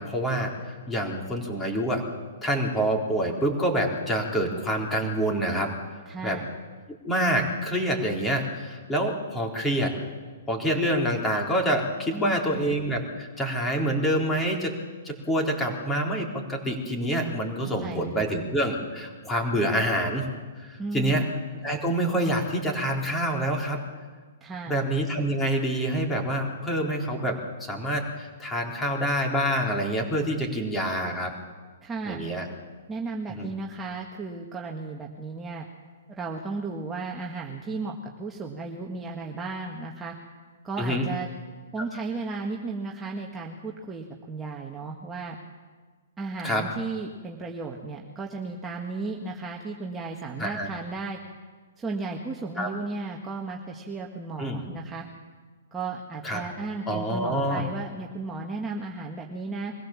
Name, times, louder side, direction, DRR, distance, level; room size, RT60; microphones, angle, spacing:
voice 1, 0.0-2.0 2.4-5.7 6.2-6.4 7.0-9.9 10.5-14.7 15.0-20.3 20.6-21.2 21.6-23.8 24.7-27.4 27.7-31.3 32.1-32.5 33.3-33.5 40.8-41.1 46.4-46.6 50.4-50.7 52.6-52.7 54.4-54.6 56.2-56.4 56.9-57.6, right 1 dB, 10° left, 0 dB, 4.0 m, -27 dB
voice 2, 6.1-6.5 12.1-12.7 17.8-18.3 20.8-21.4 24.4-24.8 31.8-32.2 32.9-35.7 36.1-40.2 40.6-41.3 41.7-45.4 46.2-51.2 51.8-55.1 55.7-59.7, right 3 dB, 15° right, -1 dB, 1.7 m, -34 dB
23.0 x 15.5 x 7.4 m, 1.4 s
hypercardioid pair, 135°, 0 cm